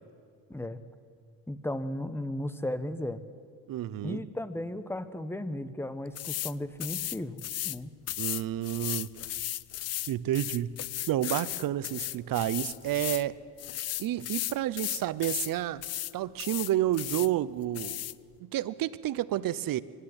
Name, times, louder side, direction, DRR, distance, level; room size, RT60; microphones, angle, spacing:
voice 1, 0.5-0.8 1.5-3.2 4.0-7.4 7.6-7.9, left 1 dB, 5° left, 12 dB, 1.1 m, -35 dB
voice 2, 3.7-4.2 8.2-9.1 10.1-10.8 11.1-13.3 14.0-15.8 16.1-18.0 18.4-19.8, right 13 dB, 50° right, 17 dB, 0.9 m, -30 dB
sound 1, 6.2-6.5 6.8-7.8 8.1-13.3 13.6-15.5 15.8-16.1 16.4-17.3 17.8-18.1, left 14 dB, 40° left, 0.4 m, -35 dB
23.5 x 11.5 x 9.6 m, 2.2 s
supercardioid pair, 85°, 44 cm